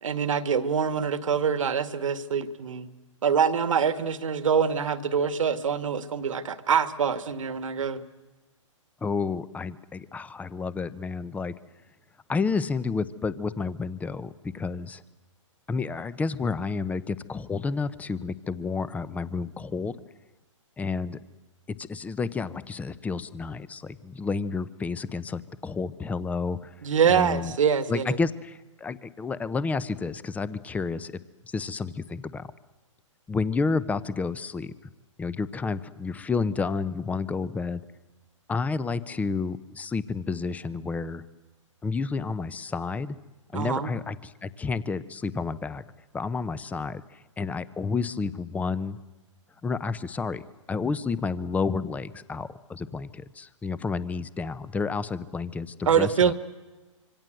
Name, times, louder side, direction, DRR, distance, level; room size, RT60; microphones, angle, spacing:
voice 1, 0.0-2.9 3.2-8.0 26.8-28.2 43.5-43.9 55.9-56.3, right 7 dB, 75° right, 11 dB, 2.0 m, -25 dB
voice 2, 9.0-11.5 12.3-15.0 15.7-20.0 20.8-21.2 21.7-26.7 27.1-27.5 27.9-31.1 31.4-32.5 33.3-34.7 35.2-37.8 38.5-41.2 41.8-43.2 43.5-45.8 46.1-49.0 49.6-56.3, left 4 dB, 10° left, 17 dB, 0.8 m, -30 dB
26.5 x 24.5 x 7.9 m, 1.2 s
hypercardioid pair, 135°, 17 cm